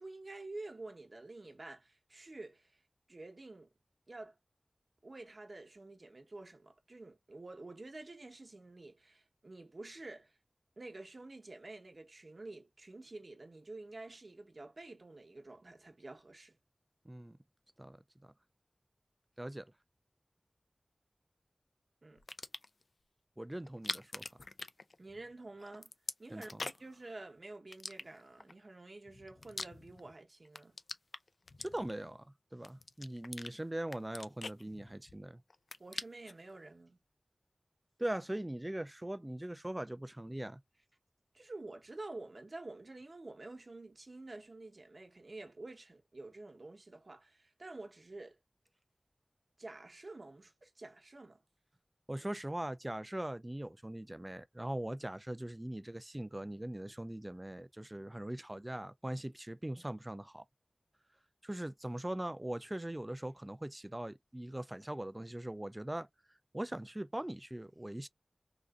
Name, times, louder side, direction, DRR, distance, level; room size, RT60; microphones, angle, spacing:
voice 1, 0.0-2.8 3.1-3.7 4.1-4.4 5.0-10.3 10.8-16.5 22.0-22.2 25.0-25.9 26.2-30.8 35.8-37.0 41.3-48.4 49.6-51.4, right 2 dB, 55° right, 0.9 m, -49 dB
voice 2, 17.1-17.4 17.8-18.0 18.2-18.3 19.4-19.7 23.4-24.2 26.3-26.6 31.6-35.4 38.0-40.6 52.1-60.4 61.4-66.1 66.5-68.1, right 1 dB, 20° right, 0.3 m, -41 dB
sound 1, 22.2-22.8 23.7-25.3 25.6-27.0 27.7-28.5 29.1-30.2 30.5-32.1 32.6-33.5 33.9-35.2 35.5-36.4, left 3 dB, 70° left, 0.4 m, -44 dB
3.8 x 2.5 x 2.4 m
wide cardioid pair, 65°, 0 cm